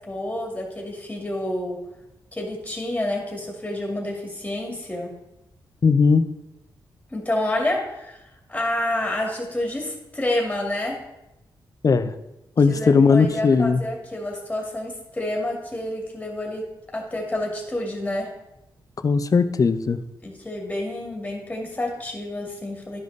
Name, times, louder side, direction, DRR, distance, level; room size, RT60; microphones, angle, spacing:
voice 1, 0.1-1.8 2.3-5.1 7.1-8.2 8.5-11.0 12.7-16.7 16.9-18.3 20.2-23.0, left 1 dB, 15° left, 0 dB, 2.4 m, -28 dB
voice 2, 5.8-6.2 11.8-12.1 12.6-13.8 19.0-20.0, left 5 dB, 45° left, 11 dB, 0.6 m, -18 dB
12.0 x 5.2 x 4.0 m, 0.91 s
cardioid pair, 90°, 8 cm